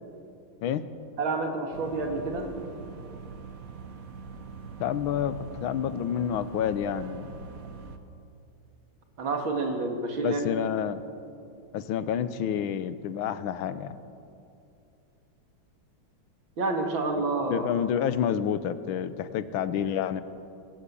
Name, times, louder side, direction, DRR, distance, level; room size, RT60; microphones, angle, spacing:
voice 1, 1.2-2.5 9.2-10.4 16.6-17.7, right 3 dB, 70° right, 3 dB, 3.0 m, -28 dB
sound 1, 1.7-8.0, right 5 dB, 50° right, 1.4 m, -43 dB
voice 2, 4.8-7.4 10.2-11.0 11.7-14.0 17.5-20.2, left 9 dB, 80° left, 13 dB, 1.6 m, -29 dB
20.0 x 17.0 x 8.4 m, 2.6 s
omnidirectional pair, 2.2 m